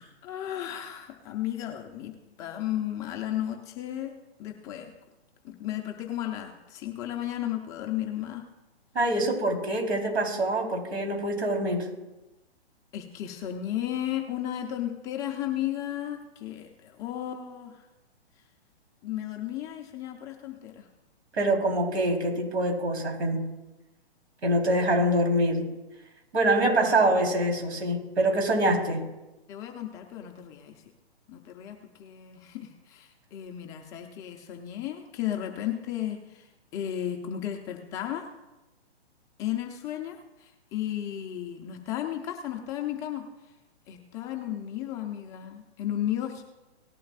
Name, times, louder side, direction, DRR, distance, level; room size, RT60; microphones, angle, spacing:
voice 1, 0.0-2.1 2.4-4.9 5.4-8.4 12.9-17.8 19.0-20.9 26.8-26.9 29.5-30.8 31.3-36.5 36.7-38.3 39.4-43.2 43.9-46.4, left 11 dB, 10° left, 3 dB, 0.4 m, -34 dB
voice 2, 8.9-11.9 21.3-23.5 24.4-25.7 26.3-29.1, right 1 dB, 80° right, 1 dB, 3.9 m, -25 dB
18.0 x 11.5 x 2.4 m, 1.0 s
hypercardioid pair, 140°, 32 cm